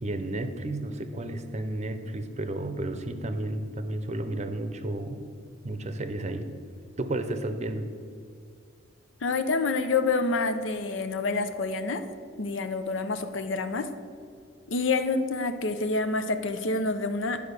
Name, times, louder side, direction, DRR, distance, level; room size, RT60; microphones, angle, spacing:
voice 1, 0.0-5.3 5.6-6.4 7.0-7.9, right 1 dB, 35° right, 8 dB, 0.7 m, -32 dB
voice 2, 9.2-12.0 12.4-13.9 14.7-17.4, left 3 dB, 70° left, 9 dB, 0.6 m, -27 dB
10.0 x 5.0 x 6.7 m, 2.2 s
head